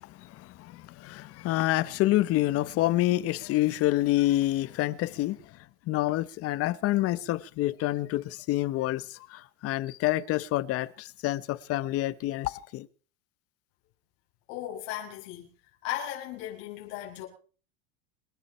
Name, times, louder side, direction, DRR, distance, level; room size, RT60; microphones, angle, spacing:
voice 1, 0.0-5.4 5.9-12.9, left 16 dB, 50° left, 1.2 m, -28 dB
voice 2, 14.5-15.5 15.8-17.3, left 12 dB, 65° left, 7.1 m, -36 dB
27.5 x 11.5 x 4.5 m
supercardioid pair, 130°, 31 cm